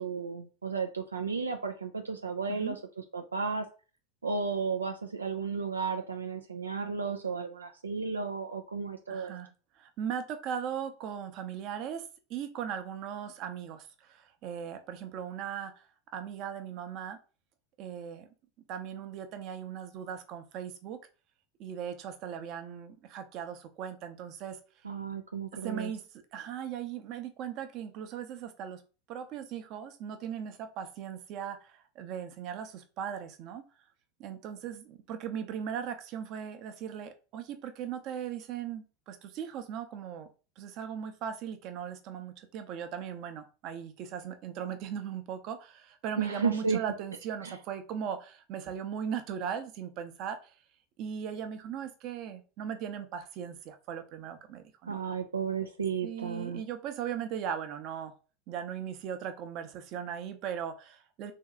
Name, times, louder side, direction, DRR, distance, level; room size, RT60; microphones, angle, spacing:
voice 1, 0.0-3.7 4.2-9.3 24.8-25.9 46.2-46.8 47.4-47.6 54.9-56.6, right 5 dB, 90° right, 5 dB, 0.3 m, -33 dB
voice 2, 9.1-9.5 9.8-12.0 12.3-15.7 16.1-17.2 17.8-18.3 18.7-21.0 21.6-24.6 25.6-28.8 29.1-33.6 34.2-40.3 40.6-50.4 51.0-55.0 56.0-58.1 58.5-61.3, right 8 dB, 50° right, 7 dB, 0.7 m, -38 dB
3.1 x 2.7 x 3.6 m, 0.34 s
hypercardioid pair, 85°, 0 cm